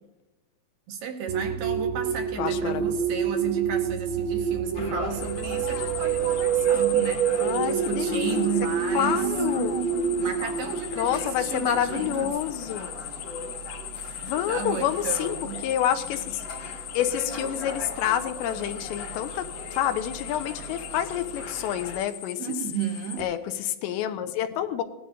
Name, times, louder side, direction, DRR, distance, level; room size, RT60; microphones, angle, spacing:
voice 1, 0.9-9.2 10.2-12.4 14.0-15.6 22.4-23.3, right 7 dB, 70° right, 2.3 m, -34 dB
sound 1, 1.3-12.3, right 8 dB, 90° right, 1.9 m, -27 dB
voice 2, 2.4-3.0 7.4-8.5 8.9-10.1 11.0-12.9 14.2-16.4 16.9-22.4 23.2-24.8, left 10 dB, 85° left, 3.0 m, -28 dB
sound 2, 4.7-22.0, left 1 dB, 40° left, 1.7 m, -40 dB
sound 3, 5.2-23.2, left 11 dB, 65° left, 2.2 m, -39 dB
18.5 x 12.0 x 2.6 m
omnidirectional pair, 5.0 m